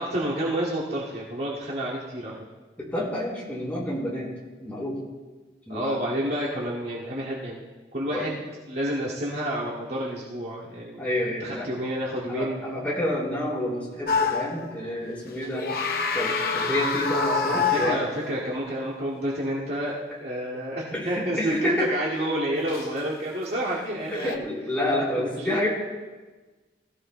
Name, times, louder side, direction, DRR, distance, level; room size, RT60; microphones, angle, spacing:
voice 1, 0.0-2.3 5.7-8.4 8.7-11.0 11.4-12.6 17.5-24.5 25.2-25.6, right 1 dB, 60° right, -8 dB, 2.3 m, -29 dB
voice 2, 2.8-4.3 4.6-5.0 5.7-6.1 8.1-8.3 11.0-11.7 12.3-15.6 16.1-18.0 20.9-22.0 24.1-25.7, left 1 dB, 10° left, -6 dB, 4.0 m, -29 dB
sound 1, 14.1-14.7 15.4-18.5 22.7-22.9 24.1-24.4, left 4 dB, 55° left, 0.9 m, -27 dB
20.5 x 15.0 x 2.3 m, 1.3 s
head